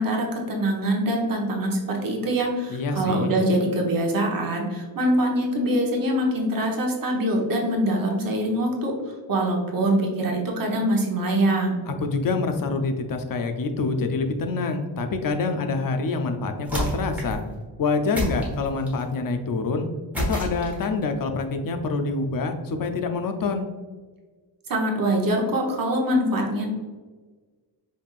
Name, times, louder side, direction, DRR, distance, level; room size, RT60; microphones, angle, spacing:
voice 1, 0.0-8.9 9.3-11.8 24.7-26.7, right 1 dB, 45° right, 0 dB, 1.0 m, -24 dB
voice 2, 2.7-3.3 11.9-17.4 17.8-19.9 20.2-23.7, left 3 dB, 50° left, 6 dB, 0.5 m, -26 dB
sound 1, 16.6-17.4 18.1-19.1 20.1-21.0, equal, 5° right, 1.1 m, -29 dB
5.3 x 3.4 x 2.4 m, 1.4 s
wide cardioid pair, 155°, 45 cm